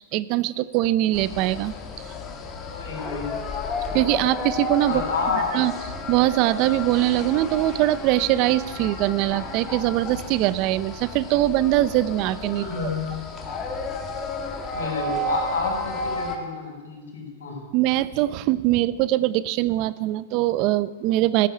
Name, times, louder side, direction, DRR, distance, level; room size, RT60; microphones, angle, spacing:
voice 1, 0.0-1.7 3.9-5.0 5.5-5.7 6.1-12.6 17.7-21.5, right 15 dB, 45° right, 17 dB, 0.6 m, -22 dB
sound 1, 1.1-16.4, left 2 dB, 30° left, 2.3 m, -33 dB
voice 2, 2.7-3.5 4.9-5.5 12.5-13.2 14.7-17.6, left 4 dB, 85° left, 1 dB, 5.6 m, -29 dB
16.0 x 8.4 x 8.8 m, 1.4 s
hypercardioid pair, 125°, 0 cm